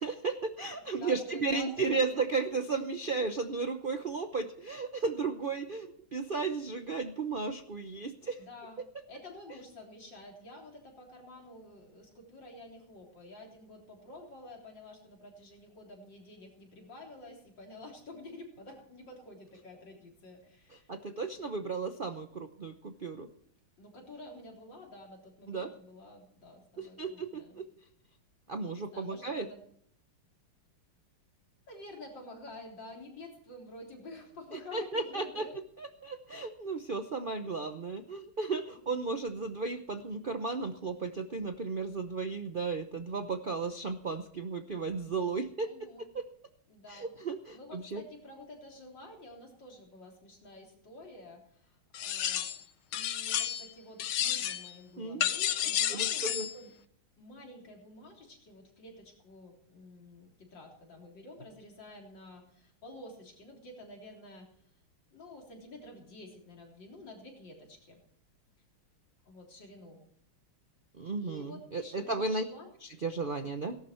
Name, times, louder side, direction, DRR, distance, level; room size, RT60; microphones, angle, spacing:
voice 1, 0.0-8.4 20.9-23.3 25.5-25.7 26.8-27.7 28.5-29.5 34.5-35.5 35.8-45.9 46.1-46.2 46.9-48.0 55.0-55.2 55.9-56.5 71.0-72.4 72.8-73.8, right 4 dB, 65° right, 7 dB, 0.5 m, -34 dB
voice 2, 1.0-2.2 8.4-8.8 9.1-20.9 21.3-21.5 23.8-27.6 28.5-29.6 31.7-35.5 38.7-39.0 45.7-46.1 46.7-47.1 47.5-52.5 52.9-56.7 57.2-64.5 65.1-68.0 69.3-70.0 71.2-72.7, left 1 dB, 55° left, 0 dB, 4.3 m, -50 dB
sound 1, 51.9-52.6 52.9-53.7 54.0-54.7 55.2-56.5, left 11 dB, 75° left, 1.7 m, -31 dB
18.0 x 12.0 x 4.5 m, 0.65 s
omnidirectional pair, 2.3 m